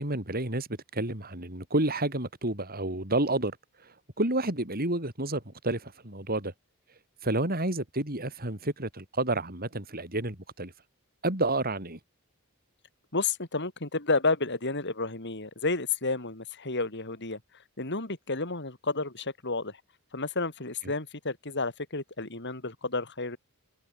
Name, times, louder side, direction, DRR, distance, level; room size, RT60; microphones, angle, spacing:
voice 1, 0.0-6.5 6.9-10.7 11.2-12.0 20.8-20.9, right 2 dB, 45° right, 5.7 m, -30 dB
voice 2, 13.1-17.4 17.8-19.8 20.1-23.4, left 3 dB, 50° left, 4.3 m, -31 dB
head